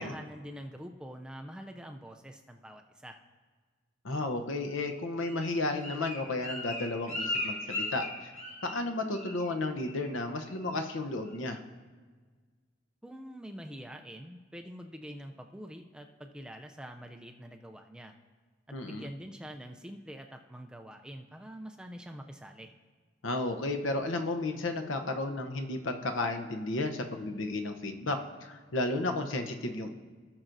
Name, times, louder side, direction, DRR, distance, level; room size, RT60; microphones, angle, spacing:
voice 1, 0.0-3.2 13.0-18.1 18.7-22.7, equal, 5° right, 4 dB, 0.4 m, -45 dB
voice 2, 4.0-8.3 8.6-11.6 18.7-19.0 23.2-29.9, left 2 dB, 85° left, 6 dB, 0.8 m, -33 dB
Bird, 4.8-8.9 9.1-9.5 9.8-10.1 10.5-10.8 11.2-11.3, left 2 dB, 35° left, 1.9 m, -38 dB
18.0 x 6.0 x 2.6 m, 1.5 s
head